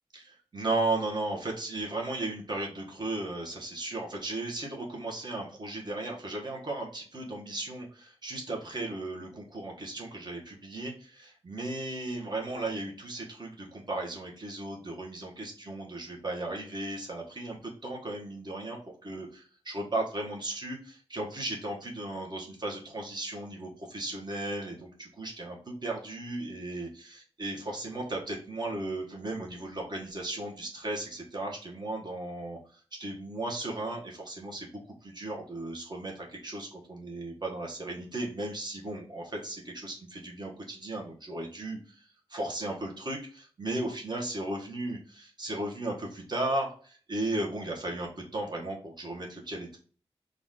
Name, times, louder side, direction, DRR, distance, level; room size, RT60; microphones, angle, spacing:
voice 1, 0.1-34.7 35.0-49.8, right 2 dB, 40° right, -1 dB, 1.2 m, -36 dB
4.0 x 2.5 x 3.7 m, 0.42 s
wide cardioid pair, 100°, 11 cm